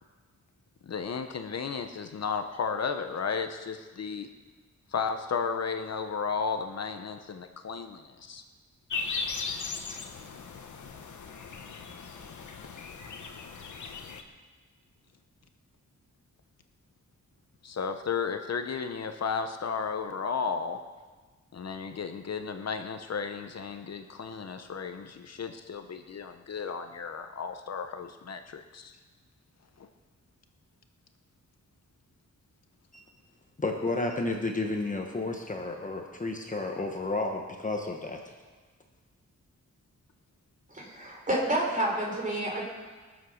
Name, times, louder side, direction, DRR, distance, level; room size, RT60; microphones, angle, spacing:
voice 1, 0.9-4.3 4.9-8.4 17.6-20.8 21.5-29.0, left 5 dB, 60° left, 7 dB, 0.8 m, -34 dB
sound 1, 8.9-14.2, left 5 dB, 85° left, 1.2 m, -38 dB
voice 2, 33.6-38.2, left 2 dB, 25° left, 2 dB, 1.1 m, -31 dB
voice 3, 40.7-42.6, right 1 dB, 25° right, -1 dB, 3.8 m, -29 dB
22.0 x 7.4 x 6.4 m, 1.4 s
wide cardioid pair, 140°, 29 cm